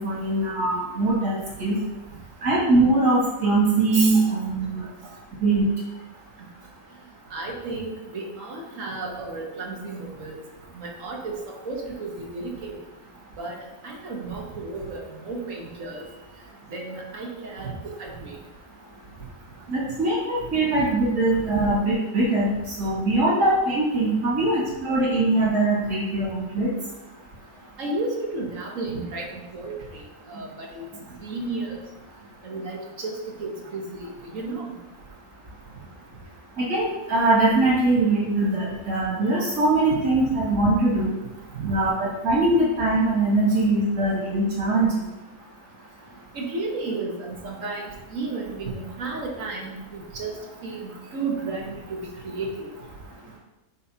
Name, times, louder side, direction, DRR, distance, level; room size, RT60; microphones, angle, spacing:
voice 1, 0.0-1.8 2.4-4.8 5.4-5.7 19.7-26.7 36.6-41.1 41.6-44.9, right 2 dB, 80° right, -7 dB, 2.6 m, -22 dB
voice 2, 3.9-4.3 7.3-10.3 10.7-12.8 13.4-13.6 13.8-16.1 16.7-17.7 18.0-18.4 27.8-29.3 29.5-29.7 30.3-30.9 31.2-31.8 32.4-34.7 39.9-40.0 41.5-41.7 46.3-50.3 50.6-52.7, right 3 dB, 55° right, -1 dB, 1.6 m, -32 dB
8.9 x 5.3 x 2.8 m, 1.0 s
omnidirectional pair, 1.7 m